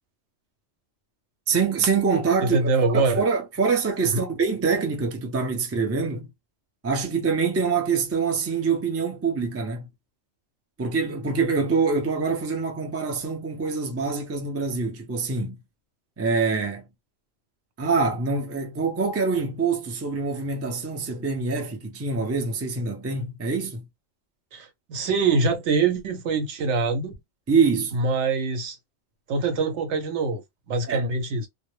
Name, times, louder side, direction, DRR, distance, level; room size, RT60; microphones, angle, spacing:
voice 1, 1.5-6.3 6.8-9.9 10.8-15.6 16.2-16.8 17.8-23.8 27.5-28.0 30.9-31.0, right 5 dB, 25° right, 0.3 m, -25 dB
voice 2, 2.4-3.2 4.1-4.3 24.5-27.1 27.9-28.8 29.3-30.4 30.7-31.5, right 4 dB, 70° right, 0.9 m, -24 dB
2.2 x 2.0 x 3.1 m
omnidirectional pair, 1.3 m